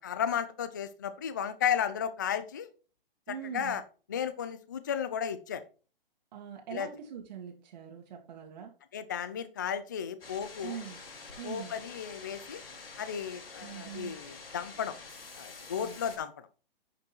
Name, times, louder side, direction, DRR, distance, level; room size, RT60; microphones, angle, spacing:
voice 1, 0.0-2.7 3.5-3.8 4.1-5.6 6.7-6.9 8.9-10.8 11.4-12.6 13.0-14.9 15.4-16.3, left 8 dB, 20° left, 13 dB, 0.3 m, -34 dB
voice 2, 3.3-3.8 6.3-8.7 10.6-11.0 11.4-11.7 13.6-14.2 15.8-16.0, right 8 dB, 50° right, 1 dB, 2.0 m, -42 dB
sound 1, 10.2-16.2, left 4 dB, 75° left, 5.0 m, -47 dB
9.3 x 5.3 x 4.3 m, 0.36 s
hypercardioid pair, 160°, 29 cm